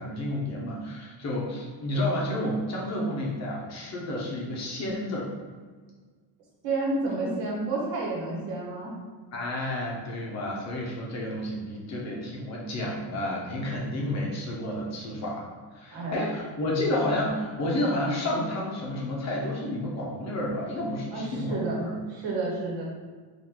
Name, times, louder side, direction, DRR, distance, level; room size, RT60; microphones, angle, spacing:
voice 1, 0.0-5.3 9.3-15.5 15.7-22.0, left 1 dB, 40° left, -3 dB, 0.6 m, -30 dB
voice 2, 6.6-8.9 15.9-16.3 21.1-21.8 22.1-22.8, right 2 dB, 75° right, -3 dB, 1.2 m, -30 dB
3.7 x 2.5 x 2.8 m, 1.5 s
cardioid pair, 170°, 44 cm